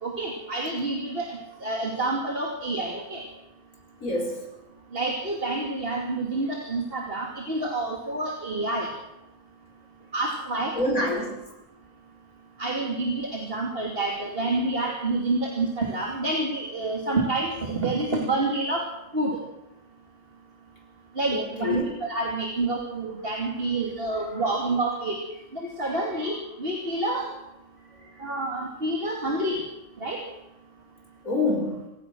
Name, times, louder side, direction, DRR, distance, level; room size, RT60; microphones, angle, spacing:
voice 1, 0.0-3.2 4.9-8.9 10.1-10.7 12.6-18.8 19.1-19.4 21.2-25.2 25.5-27.3 28.2-29.6 30.0-30.2, right 2 dB, 45° right, 1 dB, 2.9 m, -28 dB
voice 2, 4.0-4.5 10.7-11.3 21.3-21.9 28.0-28.1 31.2-31.8, left 2 dB, 75° left, 2 dB, 5.7 m, -26 dB
26.5 x 16.0 x 6.3 m, 0.92 s
omnidirectional pair, 1.4 m